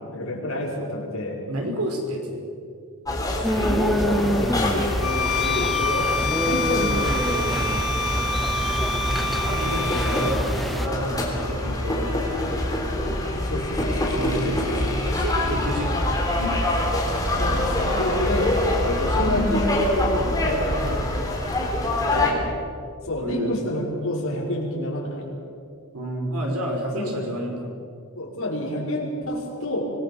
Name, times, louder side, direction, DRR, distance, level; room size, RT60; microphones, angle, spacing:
voice 1, 0.0-1.4 3.5-6.1 6.5-7.6 13.0-14.7 17.4-21.2 23.0-25.3 26.9-27.2 28.1-29.9, left 1 dB, 65° left, -2 dB, 5.8 m, -29 dB
voice 2, 1.5-2.4 9.2-12.5 14.1-14.6 15.0-16.6 19.0-19.5 20.1-20.4 22.0-22.5 23.2-23.6 25.9-27.7, equal, 90° right, 1 dB, 5.4 m, -30 dB
sound 1, 3.1-22.3, left 1 dB, 15° left, 3.6 m, -25 dB
sound 2, 3.4-10.9, equal, ahead, 0.5 m, -28 dB
Bowed string instrument, 5.0-10.4, left 3 dB, 90° left, 1.5 m, -27 dB
25.5 x 19.5 x 7.2 m, 2.4 s
head